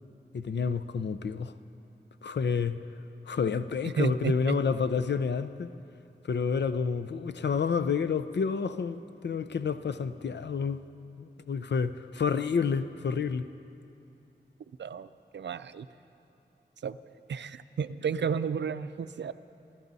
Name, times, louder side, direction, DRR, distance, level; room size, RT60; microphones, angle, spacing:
voice 1, 0.3-1.5 2.2-2.8 3.3-5.7 6.2-10.8 11.2-13.5, left 5 dB, 70° left, 13 dB, 0.5 m, -29 dB
voice 2, 3.8-4.6 14.8-15.9 16.8-17.0 17.3-19.3, right 6 dB, 75° right, 13 dB, 0.5 m, -32 dB
28.0 x 12.0 x 4.1 m, 2.8 s
wide cardioid pair, 85°, 19 cm